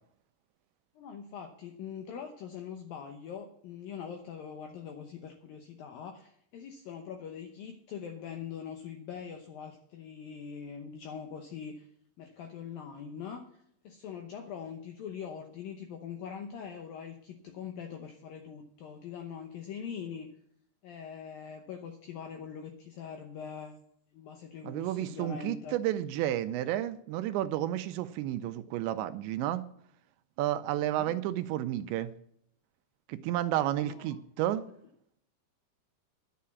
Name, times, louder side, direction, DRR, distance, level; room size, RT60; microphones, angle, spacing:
voice 1, 1.0-11.9 12.2-13.5 13.8-20.3 20.8-23.8 24.1-25.8 30.8-31.1 33.8-34.2, left 7 dB, 80° left, 4 dB, 2.1 m, -43 dB
voice 2, 24.6-29.6 30.4-32.1 33.1-34.6, right 13 dB, 80° right, 10 dB, 2.8 m, -31 dB
11.0 x 7.6 x 7.0 m, 0.68 s
omnidirectional pair, 5.4 m